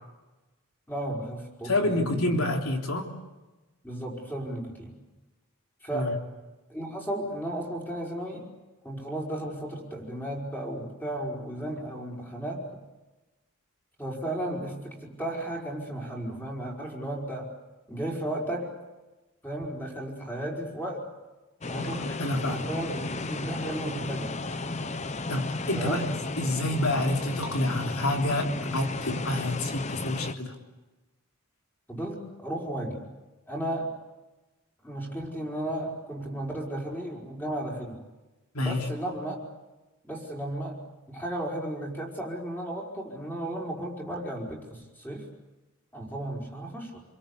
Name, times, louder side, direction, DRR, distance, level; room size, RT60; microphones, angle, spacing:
voice 1, 0.9-2.5 3.8-4.9 5.8-6.2 6.7-8.5 8.8-12.7 14.0-17.5 17.9-18.7 19.4-21.1 21.7-22.1 22.4-24.4 25.8-26.0 31.9-33.1 33.5-33.9 34.8-38.0 38.6-39.4 40.0-40.8 41.1-45.3 45.9-47.0, right 1 dB, 10° left, -1 dB, 5.2 m, -34 dB
voice 2, 1.6-3.1 5.9-6.1 21.7-22.6 25.3-26.1 26.4-30.5 38.5-38.9, left 1 dB, 75° left, 2 dB, 3.4 m, -28 dB
sound 1, 21.6-30.3, left 2 dB, 30° left, 0.8 m, -34 dB
28.5 x 22.5 x 8.3 m, 1.1 s
head